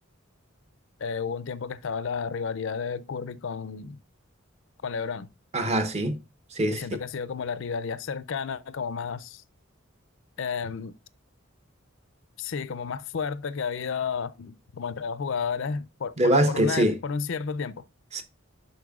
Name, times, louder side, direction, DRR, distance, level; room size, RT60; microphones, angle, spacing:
voice 1, 1.0-4.0 4.8-5.3 6.7-9.4 10.4-10.9 12.4-17.8, left 5 dB, 60° left, 0.4 m, -32 dB
voice 2, 5.5-6.2 6.5-6.8 16.2-17.0 18.1-18.2, right 1 dB, 30° right, 0.8 m, -23 dB
11.0 x 4.3 x 2.3 m
head